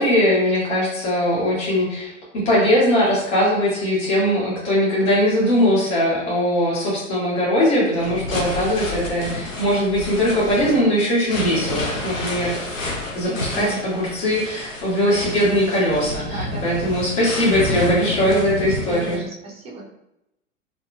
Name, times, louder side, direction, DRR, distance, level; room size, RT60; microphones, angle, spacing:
voice 1, 0.0-2.1 2.4-12.6 13.1-19.2, equal, 55° left, -7 dB, 1.4 m, -20 dB
sound 1, 8.0-19.2, left 2 dB, 90° left, 0.7 m, -30 dB
voice 2, 13.3-13.8 16.3-16.9 18.7-19.8, right 4 dB, 15° right, -2 dB, 0.4 m, -34 dB
2.7 x 2.7 x 2.3 m, 0.86 s
figure-of-eight pair, 90°, 38 cm